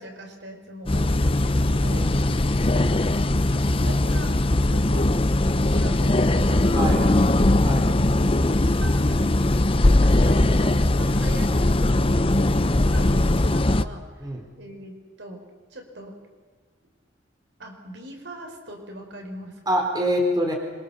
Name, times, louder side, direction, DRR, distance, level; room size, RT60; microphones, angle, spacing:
voice 1, 0.0-2.2 3.4-7.1 8.4-9.3 9.8-15.4 15.7-16.2 17.6-19.9, right 1 dB, 70° right, 3 dB, 5.0 m, -42 dB
sound 1, 0.9-13.8, left 1 dB, 30° left, 0.7 m, -20 dB
voice 2, 1.9-2.3 6.7-7.1 7.6-7.9 14.2-14.4 19.7-20.5, equal, 20° right, 1 dB, 4.0 m, -25 dB
26.5 x 24.0 x 7.2 m, 1.5 s
head